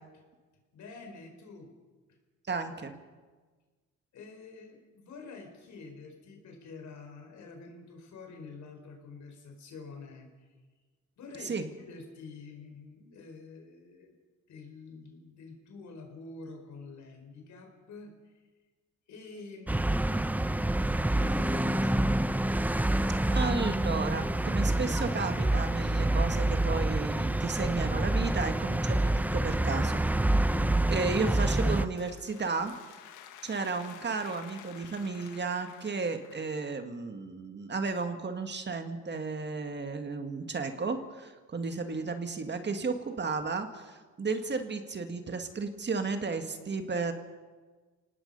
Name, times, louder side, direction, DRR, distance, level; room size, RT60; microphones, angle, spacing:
voice 1, 0.7-1.7 2.1-2.2 4.1-10.5 11.2-14.1 14.5-18.4 19.1-22.4 30.4-30.8, left 4 dB, 70° left, 3 dB, 4.9 m, -47 dB
voice 2, 2.5-2.9 11.4-11.7 23.3-30.0 30.9-32.7 33.4-47.1, right 4 dB, 35° right, 7 dB, 1.9 m, -33 dB
sound 1, 19.7-31.9, right 1 dB, 5° right, 0.7 m, -27 dB
sound 2, 31.8-36.6, left 10 dB, 85° left, 1.5 m, -52 dB
26.0 x 18.5 x 5.5 m, 1.4 s
cardioid pair, 90°, 30 cm